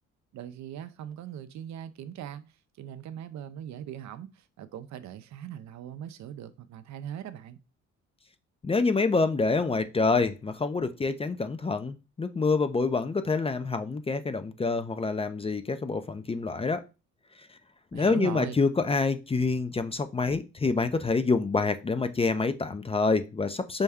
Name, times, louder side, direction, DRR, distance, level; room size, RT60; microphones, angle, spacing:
voice 1, 0.3-7.6 17.9-18.6, right 10 dB, 65° right, 0.5 m, -40 dB
voice 2, 8.6-16.8 17.4-17.5 17.9-23.8, left 4 dB, 20° left, 0.4 m, -27 dB
5.3 x 2.2 x 3.5 m
cardioid pair, 90°, 30 cm